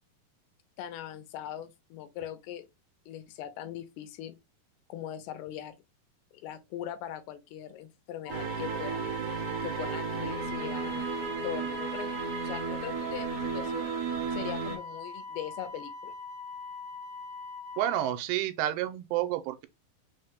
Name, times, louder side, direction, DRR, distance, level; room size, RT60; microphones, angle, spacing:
voice 1, 0.8-2.7 3.1-4.4 4.9-5.8 6.3-9.1 9.6-12.1 12.4-13.9 14.3-16.1, left 10 dB, 85° left, 2.6 m, -40 dB
Wind instrument woodwind instrument, 8.2-18.1, left 4 dB, 50° left, 0.7 m, -42 dB
sound 1, 8.3-14.8, right 6 dB, 70° right, 1.6 m, -34 dB
voice 2, 17.8-19.7, right 13 dB, 90° right, 2.7 m, -30 dB
6.1 x 2.1 x 3.3 m
omnidirectional pair, 4.6 m